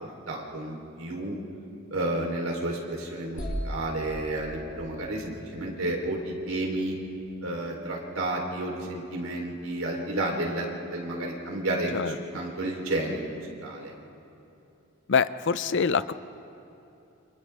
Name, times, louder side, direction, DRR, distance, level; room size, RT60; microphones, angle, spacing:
voice 1, 0.3-1.4 1.9-7.0 7.4-11.9 12.3-13.9, right 1 dB, 75° right, -1 dB, 3.7 m, -31 dB
sound 1, 3.4-7.2, equal, 35° left, 5.6 m, -39 dB
voice 2, 15.1-16.1, left 5 dB, 55° left, 14 dB, 0.5 m, -25 dB
29.5 x 27.5 x 3.5 m, 2.9 s
head